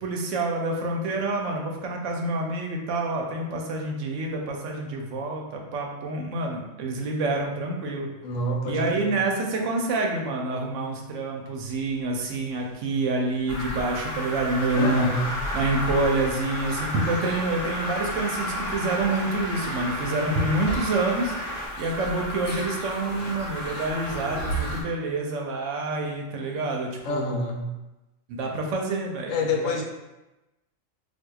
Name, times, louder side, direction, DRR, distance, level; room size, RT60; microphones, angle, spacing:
voice 1, 0.0-8.1 8.7-15.1 15.5-21.3 21.8-27.5 28.3-29.8, right 2 dB, 75° right, 1 dB, 0.9 m, -27 dB
voice 2, 8.2-9.2 14.8-15.3 27.0-27.7 29.3-29.8, left 2 dB, 80° left, 2 dB, 0.9 m, -28 dB
sound 1, 11.6-21.7, equal, 10° right, 1.1 m, -39 dB
sound 2, 13.5-24.8, equal, 55° left, 1.0 m, -32 dB
4.4 x 2.4 x 2.3 m, 1.0 s
omnidirectional pair, 1.3 m